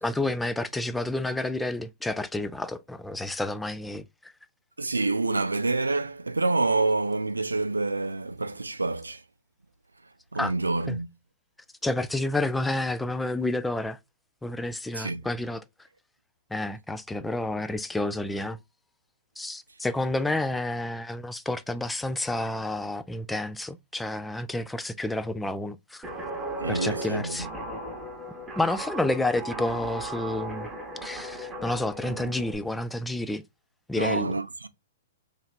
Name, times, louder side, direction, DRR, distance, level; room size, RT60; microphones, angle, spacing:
voice 1, 0.0-4.0 10.4-10.5 10.9-11.0 11.8-14.0 14.4-15.6 16.5-18.6 19.4-26.0 26.7-27.5 28.6-30.7 31.0-33.4 33.9-34.3, left 2 dB, 5° left, 0.3 m, -30 dB
voice 2, 4.8-9.2 10.3-11.1 14.9-15.2 26.6-27.5 34.0-34.7, right 3 dB, 85° right, 0.4 m, -27 dB
Guitar, 26.0-32.6, right 2 dB, 10° right, 1.0 m, -36 dB
3.2 x 2.8 x 2.4 m
figure-of-eight pair, 115°, 0 cm